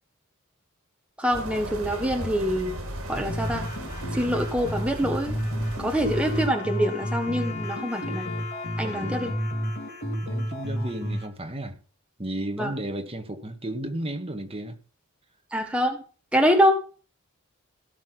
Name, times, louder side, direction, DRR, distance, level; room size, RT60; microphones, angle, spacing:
voice 1, 1.2-2.7 3.1-3.7 4.1-5.3 5.8-8.3 8.8-9.3 12.6-12.7 15.5-16.0 16.3-16.7, equal, 5° right, 1.6 m, -25 dB
sound 1, 1.3-6.5, right 1 dB, 65° right, 6.1 m, -36 dB
sound 2, 3.3-11.3, equal, 45° left, 3.1 m, -31 dB
Wind instrument woodwind instrument, 6.0-11.1, left 6 dB, 30° left, 2.5 m, -40 dB
voice 2, 8.8-9.4 10.2-11.8 12.2-14.8, right 1 dB, 25° right, 1.8 m, -33 dB
17.5 x 6.1 x 6.1 m
head